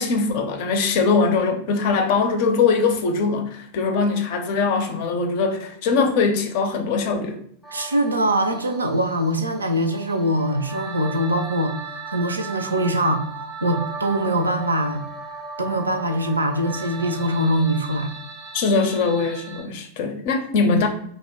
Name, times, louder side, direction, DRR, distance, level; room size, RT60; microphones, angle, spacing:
voice 1, 0.0-7.4 18.5-20.9, left 4 dB, 50° left, 5 dB, 0.5 m, -21 dB
sound 1, 7.6-19.6, right 4 dB, ahead, 0.5 m, -37 dB
voice 2, 7.7-15.0 15.6-18.1, right 1 dB, 80° right, 7 dB, 0.4 m, -23 dB
2.9 x 2.1 x 3.5 m, 0.64 s
figure-of-eight pair, 90°, 0 cm